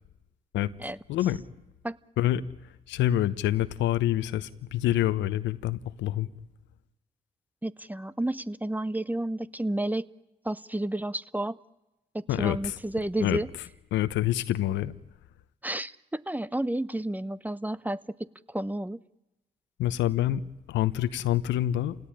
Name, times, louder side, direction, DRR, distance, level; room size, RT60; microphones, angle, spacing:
voice 1, 1.1-1.4 2.2-2.4 2.9-6.3 12.3-12.8 13.2-13.4 13.9-14.9 19.8-20.4 20.7-22.0, left 13 dB, 75° left, 1.0 m, -26 dB
voice 2, 7.6-10.0 10.4-11.6 12.1-13.5 15.6-19.0, right 1 dB, 10° right, 0.9 m, -31 dB
29.5 x 17.5 x 10.0 m
hypercardioid pair, 50°, 19 cm